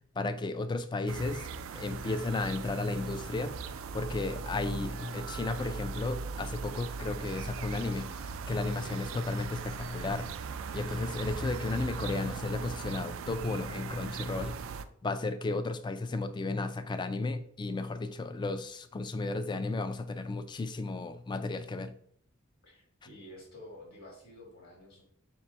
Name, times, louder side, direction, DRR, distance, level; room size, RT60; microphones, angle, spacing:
voice 1, 0.2-1.5 1.7-3.5 3.9-8.1 8.5-10.3 10.7-14.5 15.0-21.9, left 3 dB, 25° left, 10 dB, 0.3 m, -33 dB
sound 1, 1.1-14.8, right 5 dB, 85° right, 0.3 m, -39 dB
voice 2, 22.6-25.0, left 1 dB, 55° left, -1 dB, 1.5 m, -50 dB
3.3 x 3.0 x 4.5 m, 0.63 s
head